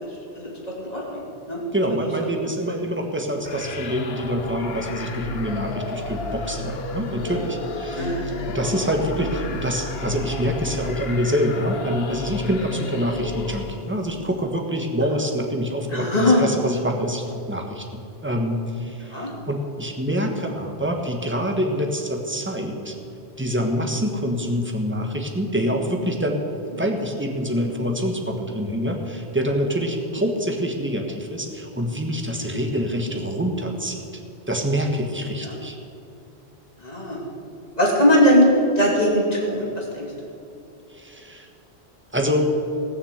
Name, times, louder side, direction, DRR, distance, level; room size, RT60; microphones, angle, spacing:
voice 1, 0.0-1.6 2.6-2.7 7.9-8.3 8.6-8.8 15.1-15.2 15.9-16.5 19.1-19.3 32.5-32.7 35.4-35.5 36.8-37.2 37.8-38.5 38.8-40.0, left 1 dB, 35° left, -3 dB, 2.9 m, -21 dB
voice 2, 1.7-23.0 23.4-34.0 34.5-35.8 40.9-41.5 42.1-42.4, equal, 10° right, 2 dB, 1.4 m, -26 dB
sound 1, 3.4-14.0, left 2 dB, 65° left, 1.2 m, -32 dB
18.0 x 6.7 x 8.1 m, 2.8 s
omnidirectional pair, 1.1 m